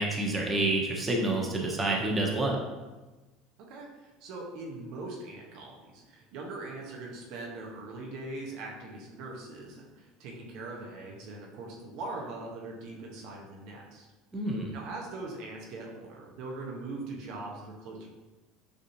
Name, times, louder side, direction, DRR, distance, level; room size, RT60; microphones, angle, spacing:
voice 1, 0.0-2.6 14.3-14.7, right 2 dB, 20° right, -1 dB, 1.0 m, -28 dB
voice 2, 3.7-14.1 14.7-18.1, right 2 dB, 65° right, -1 dB, 0.9 m, -41 dB
6.7 x 2.6 x 2.7 m, 1.2 s
hypercardioid pair, 85°, 0 cm